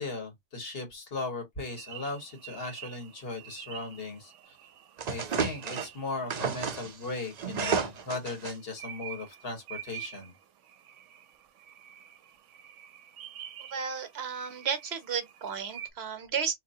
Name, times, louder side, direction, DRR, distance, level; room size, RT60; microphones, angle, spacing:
voice 1, 0.0-4.6 5.1-10.3, left 3 dB, 55° left, 1.5 m, -37 dB
sound 1, 1.7-15.9, right 10 dB, 90° right, 0.9 m, -48 dB
sound 2, 5.0-5.9 6.3-8.5, right 6 dB, 45° right, 0.6 m, -32 dB
voice 2, 13.7-16.5, right 6 dB, 65° right, 1.0 m, -33 dB
3.8 x 2.9 x 2.7 m
omnidirectional pair, 1.2 m